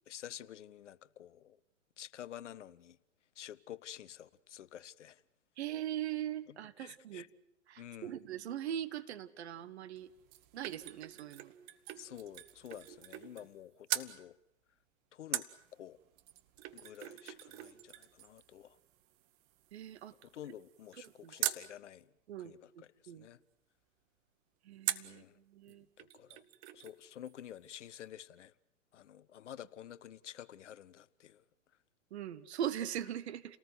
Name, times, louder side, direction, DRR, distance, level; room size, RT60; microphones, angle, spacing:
voice 1, 0.1-1.6 2.0-3.0 3.4-5.2 6.5-7.3 7.8-8.2 12.0-14.4 15.1-16.0 16.7-18.8 20.3-22.1 22.4-23.4 25.0-25.4 26.0-26.4 26.7-28.5 28.9-31.4, left 10 dB, 65° left, 0.9 m, -50 dB
voice 2, 5.6-7.3 7.7-10.1 10.5-11.5 19.7-20.1 21.0-21.3 22.3-22.5 23.1-23.3 24.6-25.9 32.1-33.6, right 10 dB, 55° right, 1.4 m, -40 dB
sound 1, 10.0-13.6 13.9-14.1 15.3-21.7 24.8-25.2 25.7-25.8 26.0-27.0 27.3-27.4, right 15 dB, 30° right, 1.1 m, -42 dB
29.5 x 19.0 x 7.9 m
hypercardioid pair, 120°, 39 cm